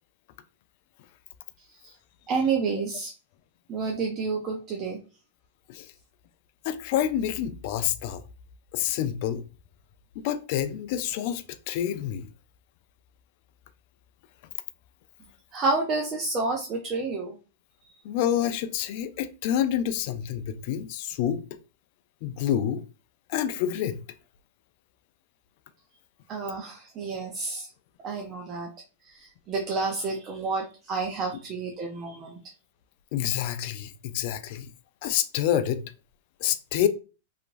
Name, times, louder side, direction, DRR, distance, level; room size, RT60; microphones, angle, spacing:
voice 1, 2.3-3.1 3.7-5.0 15.5-17.4 17.8-18.0 26.3-27.7 28.0-28.7 29.1-32.4, right 4 dB, 35° right, 0.5 m, -29 dB
voice 2, 6.6-8.2 8.7-9.4 10.2-12.3 18.0-21.4 22.2-22.8 23.3-24.0 33.1-34.7 35.0-35.8 36.4-36.9, left 10 dB, 55° left, 0.3 m, -28 dB
2.9 x 2.4 x 2.5 m
hypercardioid pair, 115°, 0 cm